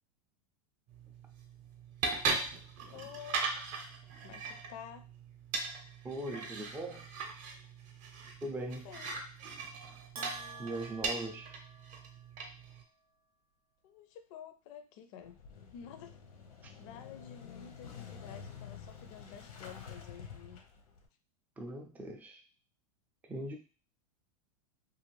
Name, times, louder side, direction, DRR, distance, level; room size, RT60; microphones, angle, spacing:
sound 1, 0.9-12.8, right 4 dB, 40° right, 0.7 m, -39 dB
voice 1, 2.8-3.5 4.2-5.1 8.8-9.1 13.8-15.4 15.7-16.2 16.8-20.7, left 8 dB, 55° left, 9 dB, 0.5 m, -50 dB
voice 2, 6.0-7.1 8.4-8.9 10.6-11.6 16.6-16.7 21.6-22.4 23.2-23.6, right 1 dB, 10° right, 2 dB, 0.3 m, -40 dB
Bell, 10.2-12.3, right 3 dB, 80° right, 0.6 m, -48 dB
Motorcycle / Engine starting, 15.2-21.1, left 7 dB, 90° left, 0.8 m, -49 dB
2.6 x 2.5 x 3.0 m, 0.35 s
supercardioid pair, 125°, 19 cm